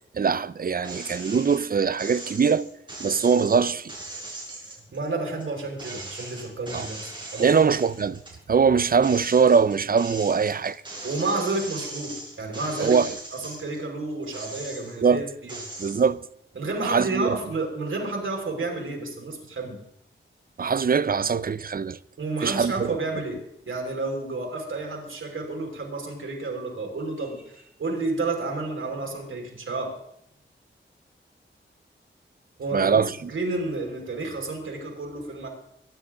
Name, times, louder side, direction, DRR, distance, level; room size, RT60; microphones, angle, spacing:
voice 1, 0.1-2.7 3.0-3.9 6.7-6.9 7.4-8.2 8.5-10.8 12.8-13.1 15.0-15.3 15.8-16.3 16.8-17.4 20.6-22.0 22.4-23.0 32.7-33.3, right 6 dB, 45° right, 0.6 m, -22 dB
sound 1, 0.8-1.6 2.0-5.5 5.8-8.4 8.8-13.8 14.2-15.1 15.5-16.0, right 2 dB, 20° right, 5.7 m, -39 dB
voice 2, 4.9-7.6 11.0-13.0 13.3-15.6 16.6-19.8 22.2-30.0 32.6-33.0 33.3-35.5, right 3 dB, 70° right, 5.6 m, -31 dB
23.0 x 11.5 x 3.8 m
wide cardioid pair, 120°, 21 cm